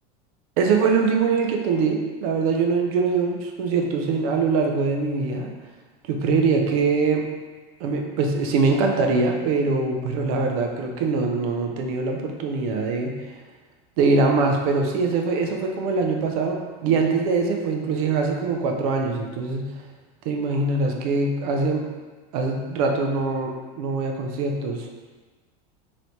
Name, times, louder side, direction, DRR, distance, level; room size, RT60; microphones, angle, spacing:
voice 1, 0.6-5.5 6.1-7.3 7.8-13.3 14.0-19.7 20.2-21.8 22.3-24.9, right 4 dB, 70° right, 2 dB, 0.7 m, -23 dB
3.2 x 3.0 x 4.2 m, 1.3 s
supercardioid pair, 135°, 19 cm